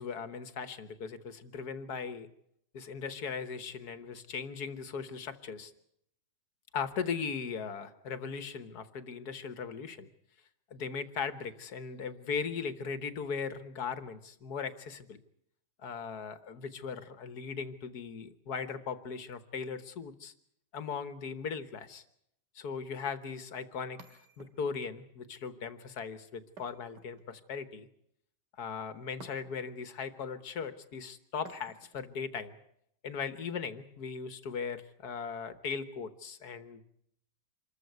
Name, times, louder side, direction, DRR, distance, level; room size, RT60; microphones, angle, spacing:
voice 1, 0.0-2.3 2.7-5.7 6.7-10.1 10.7-15.2 15.8-20.3 20.7-22.0 22.6-27.9 28.6-32.6 33.0-36.8, left 6 dB, 65° left, 11 dB, 1.8 m, -38 dB
sound 1, 24.0-24.9 26.6-27.5 29.2-29.8 31.4-32.1, right 4 dB, 80° right, 2.7 m, -54 dB
26.0 x 14.5 x 9.4 m, 0.73 s
omnidirectional pair, 1.8 m